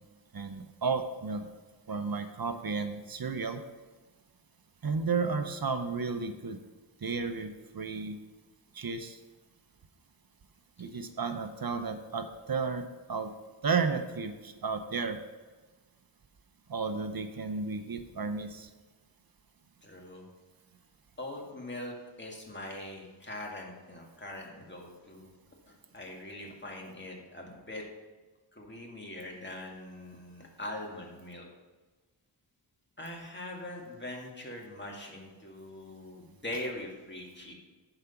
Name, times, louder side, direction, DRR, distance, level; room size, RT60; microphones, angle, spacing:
voice 1, 0.3-1.5 1.9-3.6 4.8-6.6 7.0-8.2 8.7-9.2 10.8-13.3 13.6-15.2 16.7-18.7, right 4 dB, 50° right, 8 dB, 0.8 m, -33 dB
voice 2, 19.8-20.3 21.2-25.3 25.7-27.8 28.5-31.4 33.0-37.5, left 1 dB, 25° left, -1 dB, 2.1 m, -42 dB
10.5 x 5.0 x 5.8 m, 1.3 s
wide cardioid pair, 85°, 45 cm